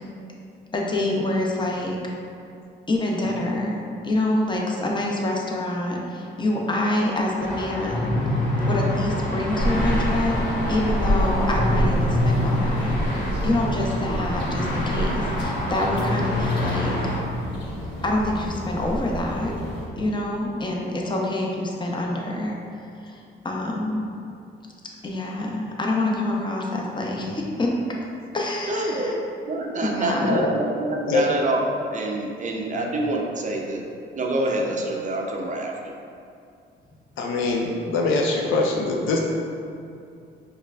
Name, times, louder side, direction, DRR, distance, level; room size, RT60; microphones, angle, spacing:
voice 1, 0.7-2.0 2.9-8.2 8.6-10.3 10.7-13.0 13.4-17.0 18.0-19.5 20.0-22.6 23.0-23.2 23.4-24.0 25.0-27.7 28.3-29.1 29.8-30.4, left 1 dB, 25° left, -1 dB, 0.6 m, -26 dB
sound 1, 7.4-17.2, left 1 dB, 45° left, 1.0 m, -26 dB
sound 2, 9.6-19.8, equal, 65° left, 1.2 m, -28 dB
voice 2, 28.7-33.8 34.1-35.9, right 2 dB, 40° right, 0 dB, 0.5 m, -27 dB
voice 3, 37.2-39.2, left 3 dB, 85° left, -1 dB, 0.6 m, -23 dB
5.1 x 2.4 x 2.3 m, 2.5 s
cardioid pair, 90°, 20 cm